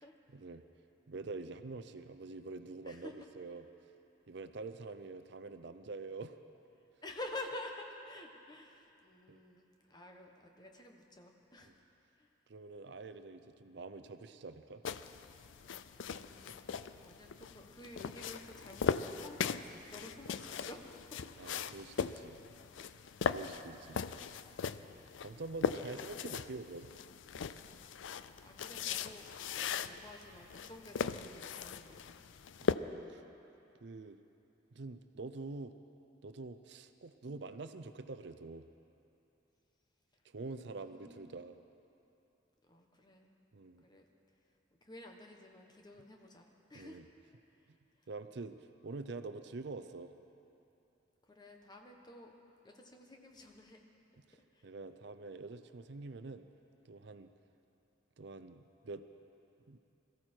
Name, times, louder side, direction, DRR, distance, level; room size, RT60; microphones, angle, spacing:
voice 1, 0.3-0.6 1.1-3.6 4.3-6.4 9.3-9.4 11.7-11.8 12.5-14.8 16.5-16.6 21.4-22.4 23.3-24.1 25.2-26.9 32.6-33.2 33.8-34.2 34.7-35.8 36.2-38.7 40.2-41.6 43.5-43.8 46.7-47.0 48.1-50.1 54.3-54.4 54.6-56.5 56.8-57.3 58.2-59.0 59.7-59.8, right 3 dB, 60° right, 10 dB, 0.5 m, -46 dB
voice 2, 7.0-11.8 12.2-12.3 15.9-16.6 16.9-21.5 28.1-32.2 40.7-41.5 42.7-43.4 43.8-44.1 44.8-47.0 47.9-48.1 51.3-52.3 52.6-53.8 54.5-54.7, left 2 dB, 20° left, 2 dB, 1.2 m, -50 dB
sound 1, 14.8-32.7, left 6 dB, 75° left, 0.4 m, -39 dB
22.0 x 14.0 x 4.5 m, 2.8 s
head